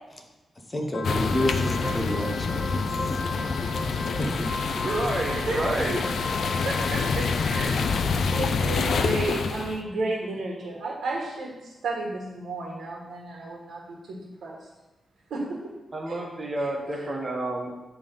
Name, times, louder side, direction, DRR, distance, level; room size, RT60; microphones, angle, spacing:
voice 1, 0.7-4.5, left 1 dB, 20° left, 3 dB, 0.8 m, -31 dB
sound 1, 0.8-11.0, equal, 5° left, 0.4 m, -38 dB
Piano, 0.9-7.9, left 4 dB, 80° left, 1.0 m, -38 dB
sound 2, 1.0-9.8, left 5 dB, 65° left, 0.4 m, -27 dB
voice 2, 4.8-6.0 15.9-17.7, right 2 dB, 25° right, 0 dB, 0.9 m, -29 dB
voice 3, 6.6-7.9 8.3-14.6 15.3-15.7 16.1-16.2 17.0-17.1, right 2 dB, 85° right, -4 dB, 1.5 m, -32 dB
7.3 x 3.4 x 5.4 m, 1.1 s
wide cardioid pair, 145°, 0 cm